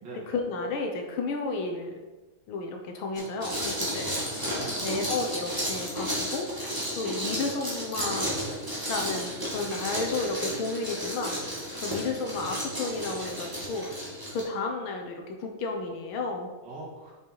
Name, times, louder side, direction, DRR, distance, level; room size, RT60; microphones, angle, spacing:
voice 1, 0.3-1.9 2.5-4.4 4.8-6.5 7.0-8.3 8.9-11.4 11.8-13.9 14.3-16.5, left 3 dB, 80° left, 3 dB, 1.8 m, -32 dB
sound 1, 3.1-14.4, equal, 10° right, 1.8 m, -33 dB
voice 2, 4.1-5.2 16.6-17.1, right 2 dB, 65° right, -5 dB, 3.1 m, -43 dB
6.6 x 5.8 x 4.7 m, 1.2 s
omnidirectional pair, 2.2 m